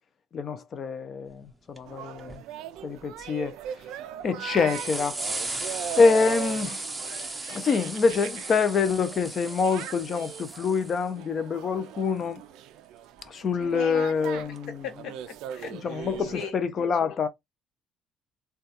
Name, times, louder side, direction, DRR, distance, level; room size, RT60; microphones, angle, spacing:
voice 1, 0.3-2.4 2.8-3.6 4.2-5.6 6.0-6.8 7.5-12.4 13.3-14.8 15.7-17.3, left 5 dB, 40° left, 0.5 m, -26 dB
sound 1, 1.5-1.6 1.8-1.9 2.2-2.4 3.0-3.7 4.2-4.3 4.7-11.1 13.2-13.3 14.6-14.7, right 2 dB, 10° right, 0.6 m, -36 dB
sound 2, 1.9-16.5, right 11 dB, 85° right, 0.3 m, -40 dB
voice 2, 13.6-14.1 14.3-14.4 14.8-16.5, left 8 dB, 65° left, 0.9 m, -39 dB
3.5 x 2.3 x 2.8 m
cardioid pair, 140°, 0 cm